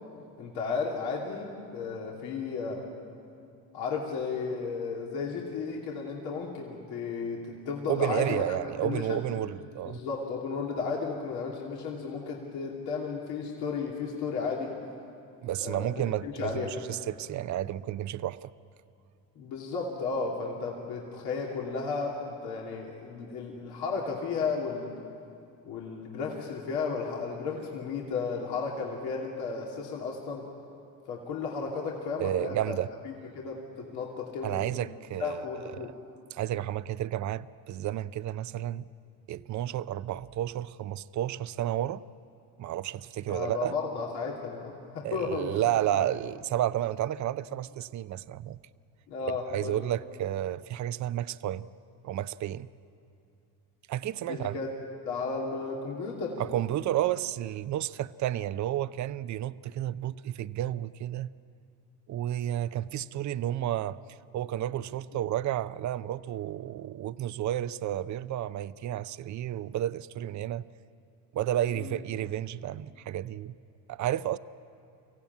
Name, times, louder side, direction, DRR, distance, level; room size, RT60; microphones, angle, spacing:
voice 1, 0.4-2.8 3.7-8.4 8.8-9.2 9.9-14.7 15.6-16.8 19.4-25.0 25.7-30.4 31.1-32.8 33.0-33.6 33.9-34.8 35.2-35.9 43.3-45.6 45.9-46.1 49.1-49.8 54.2-54.7 55.0-56.4 71.7-71.9, left 5 dB, 80° left, 2.8 m, -34 dB
voice 2, 7.9-10.0 15.4-18.5 32.2-32.9 34.4-35.9 36.3-38.8 39.3-42.0 42.6-43.7 45.0-48.6 49.5-51.7 52.0-52.7 53.9-54.6 56.4-61.3 62.1-64.0 64.3-70.6 71.3-73.5 73.9-74.4, right 12 dB, 50° right, 0.6 m, -31 dB
24.0 x 16.0 x 9.4 m
supercardioid pair, 90°, 38 cm